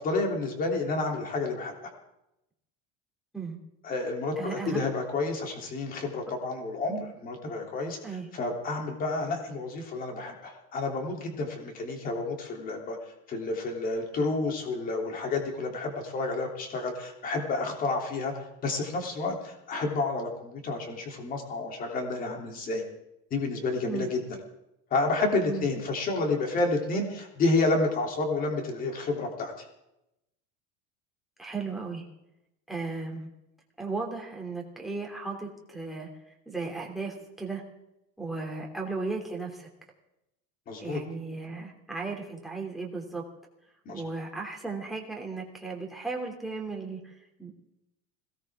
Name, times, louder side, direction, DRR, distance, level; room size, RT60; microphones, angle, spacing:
voice 1, 0.0-1.9 3.8-8.0 8.3-22.8 23.3-24.4 24.9-29.7 40.7-41.0 43.8-44.0, left 3 dB, 25° left, 2 dB, 3.3 m, -30 dB
voice 2, 4.4-4.8 8.0-8.3 23.8-24.1 25.4-25.7 31.4-32.0 32.7-33.3 33.8-37.6 38.2-39.7 40.8-43.2 43.9-47.5, right 4 dB, ahead, -2 dB, 2.8 m, -36 dB
21.5 x 17.5 x 3.7 m, 0.86 s
cardioid pair, 170°, 31 cm